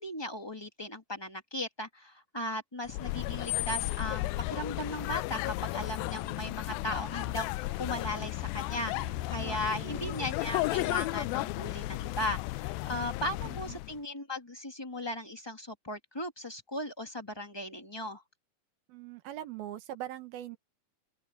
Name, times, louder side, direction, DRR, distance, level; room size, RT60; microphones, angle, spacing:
voice 1, 0.0-18.2, left 1 dB, 30° left, 0.5 m, -37 dB
sound 1, 2.9-14.0, left 19 dB, 85° left, 2.4 m, -34 dB
voice 2, 8.9-10.2 13.4-13.8 18.9-20.6, right 12 dB, 90° right, 3.4 m, -43 dB
open air
omnidirectional pair, 4.2 m